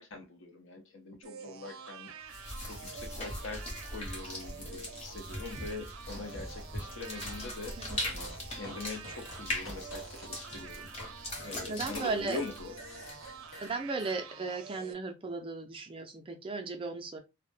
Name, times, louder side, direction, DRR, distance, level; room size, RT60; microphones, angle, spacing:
voice 1, 0.0-7.8 8.5-10.9 11.4-12.7, left 3 dB, 65° left, 0.6 m, -43 dB
sound 1, 1.2-14.9, right 5 dB, 85° right, 0.5 m, -48 dB
sound 2, 2.3-13.5, left 1 dB, 30° left, 0.8 m, -41 dB
Fart, 6.0-7.6 7.8-11.1 11.4-14.2, left 1 dB, 80° left, 1.0 m, -49 dB
voice 2, 7.8-8.4 11.7-12.4 13.6-17.2, right 3 dB, 25° right, 0.3 m, -36 dB
2.1 x 2.0 x 3.1 m
head